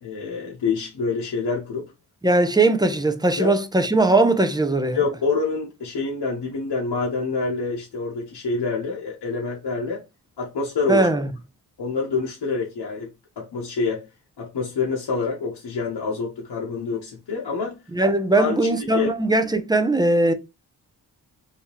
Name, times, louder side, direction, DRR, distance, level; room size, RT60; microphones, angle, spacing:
voice 1, 0.0-1.9 3.4-3.6 4.9-10.0 10.4-11.1 11.8-13.1 13.4-14.1 14.4-17.8 18.4-19.1, left 4 dB, 70° left, 1.0 m, -26 dB
voice 2, 2.2-5.0 10.9-11.3 17.9-20.3, right 2 dB, 10° right, 0.4 m, -19 dB
3.6 x 2.8 x 2.9 m
wide cardioid pair, 110°, 41 cm